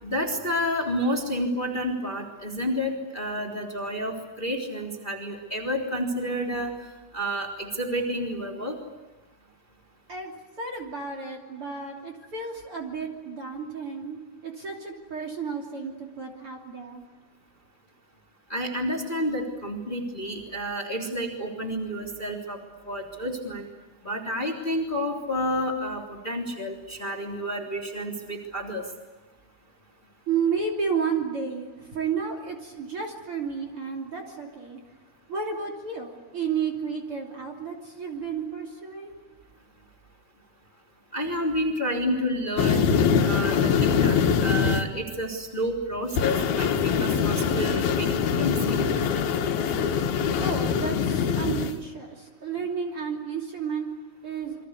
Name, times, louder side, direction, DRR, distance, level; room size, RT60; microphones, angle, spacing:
voice 1, 0.0-6.7 7.1-8.8 18.5-22.6 22.8-23.7 24.0-28.8 41.1-48.1 48.4-48.8, equal, 15° left, 1 dB, 3.3 m, -30 dB
voice 2, 10.1-17.1 30.3-34.8 35.3-39.2 50.4-54.7, right 6 dB, 40° right, 2 dB, 3.6 m, -32 dB
sound 1, 42.6-44.8 46.2-51.7, left 6 dB, 90° left, 3.5 m, -23 dB
28.0 x 25.0 x 8.3 m, 1.1 s
omnidirectional pair, 4.3 m